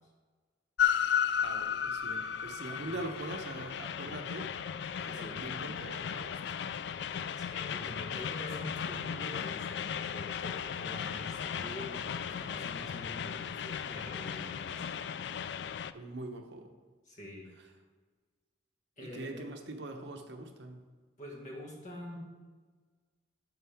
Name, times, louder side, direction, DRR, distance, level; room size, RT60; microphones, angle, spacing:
Train, 0.8-15.9, left 8 dB, 60° left, 0.3 m, -35 dB
voice 1, 1.4-4.5 4.9-6.6 15.9-16.7 19.0-20.9, right 2 dB, 65° right, 4 dB, 1.0 m, -43 dB
voice 2, 7.4-15.0 17.1-17.5 19.0-19.4 21.2-22.2, left 1 dB, 40° left, -2 dB, 1.9 m, -45 dB
11.5 x 6.7 x 3.5 m, 1.4 s
head